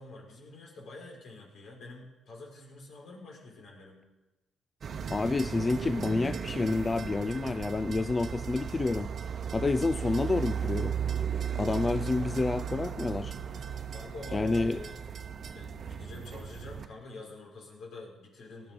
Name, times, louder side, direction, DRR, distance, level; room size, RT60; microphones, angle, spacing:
voice 1, 0.0-4.0 11.9-12.8 13.9-15.0 15.5-18.7, left 2 dB, 75° left, -1 dB, 5.0 m, -47 dB
sound 1, 4.8-16.9, right 7 dB, 50° right, 0.9 m, -36 dB
voice 2, 5.1-9.1 9.5-11.0 11.5-13.3 14.3-14.8, left 3 dB, 25° left, 11 dB, 0.4 m, -29 dB
18.5 x 10.5 x 5.2 m, 1.1 s
cardioid pair, 90°, 0 cm